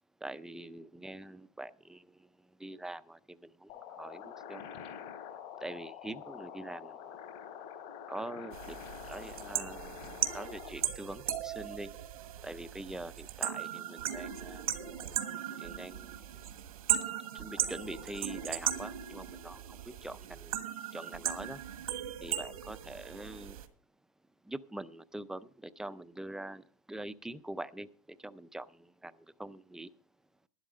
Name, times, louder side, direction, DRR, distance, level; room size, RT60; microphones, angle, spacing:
voice 1, 0.2-2.2 2.6-4.8 5.6-7.1 8.1-8.8 9.1-11.9 12.4-14.7 15.6-16.2 17.3-20.6 20.9-21.6 22.2-23.6 24.5-29.9, right 1 dB, 5° right, 14 dB, 0.5 m, -44 dB
sound 1, 3.7-10.7, left 8 dB, 55° left, 3.5 m, -46 dB
sound 2, 8.5-23.7, right 10 dB, 85° right, 1.4 m, -37 dB
11.5 x 11.0 x 4.9 m, 0.43 s
supercardioid pair, 125°, 18 cm